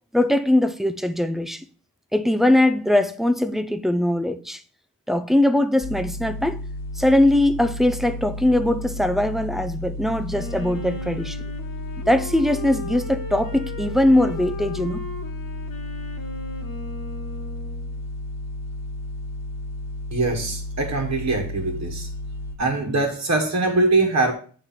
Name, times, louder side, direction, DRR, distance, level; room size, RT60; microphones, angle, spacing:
voice 1, 0.1-1.6 2.1-4.6 5.1-6.6 7.0-11.4 12.1-15.0, left 1 dB, ahead, 0.4 m, -21 dB
sound 1, 5.8-22.5, left 1 dB, 50° left, 1.4 m, -33 dB
Wind instrument woodwind instrument, 10.3-18.0, left 3 dB, 75° left, 1.5 m, -37 dB
voice 2, 20.1-22.1 22.6-24.3, right 2 dB, 50° right, 1.3 m, -22 dB
8.5 x 3.2 x 5.7 m
wide cardioid pair, 130°, 34 cm